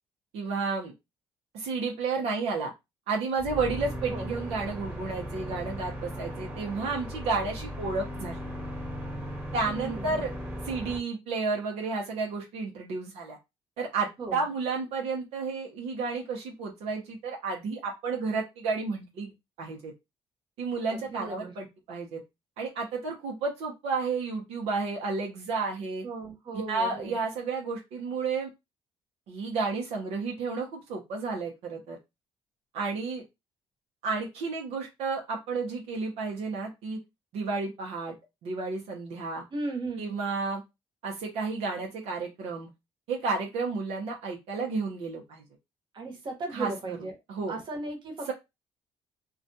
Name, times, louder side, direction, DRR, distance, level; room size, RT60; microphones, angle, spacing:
voice 1, 0.3-0.9 1.5-2.7 3.1-8.4 9.5-10.3 10.6-13.4 13.8-19.3 19.6-19.9 20.6-22.2 22.6-26.0 26.5-28.5 29.3-32.0 32.7-33.2 34.0-37.0 37.3-38.1 38.4-39.4 40.0-40.6 41.0-42.7 43.1-45.4 46.5-46.7 47.3-47.5, right 4 dB, 80° right, 0 dB, 0.7 m, -31 dB
sound 1, 3.4-11.0, equal, 15° right, 1.2 m, -37 dB
voice 2, 9.6-10.2 14.2-14.4 20.9-21.5 26.0-27.1 39.5-40.2 45.9-47.1 47.5-48.3, right 2 dB, 50° right, 3 dB, 1.0 m, -36 dB
2.4 x 2.2 x 2.7 m, 0.22 s
cardioid pair, 90°, 11 cm